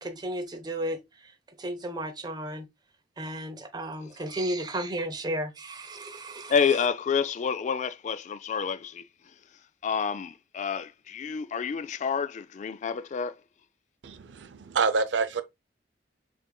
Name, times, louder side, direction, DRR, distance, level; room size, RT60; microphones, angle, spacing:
voice 1, 0.0-2.7 3.2-6.5, right 1 dB, 25° right, 0.7 m, -34 dB
voice 2, 6.5-9.1 9.8-13.4, left 6 dB, 40° left, 0.3 m, -28 dB
voice 3, 14.0-15.4, right 4 dB, 85° right, 0.5 m, -27 dB
6.2 x 2.5 x 2.2 m
head